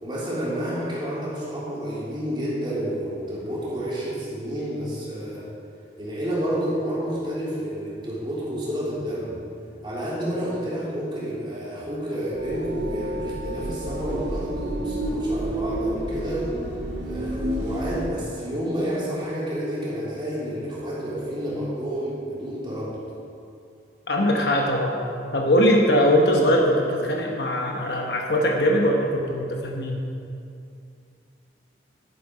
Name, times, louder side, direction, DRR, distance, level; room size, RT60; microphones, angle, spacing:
voice 1, 0.0-5.5 6.0-9.4 9.8-16.5 17.0-23.0, equal, 25° right, -7 dB, 3.3 m, -30 dB
sound 1, 12.3-18.1, right 1 dB, 90° right, 2.1 m, -30 dB
voice 2, 24.1-25.0 25.3-30.0, equal, 70° left, 0 dB, 1.1 m, -21 dB
11.0 x 9.8 x 5.0 m, 2.5 s
head